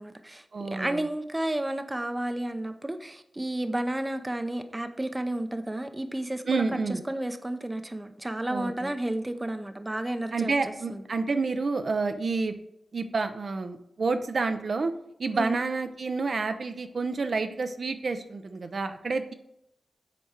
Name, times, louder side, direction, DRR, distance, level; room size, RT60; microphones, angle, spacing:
voice 1, 0.0-6.8 7.1-10.5 10.9-11.0 15.3-15.6, right 1 dB, 20° right, 9 dB, 0.6 m, -32 dB
voice 2, 0.5-1.0 6.5-7.0 8.5-8.9 10.3-12.5 12.9-14.9 15.2-19.3, right 4 dB, 55° right, 8 dB, 0.6 m, -29 dB
8.2 x 4.5 x 4.4 m, 0.81 s
wide cardioid pair, 85°, 0 cm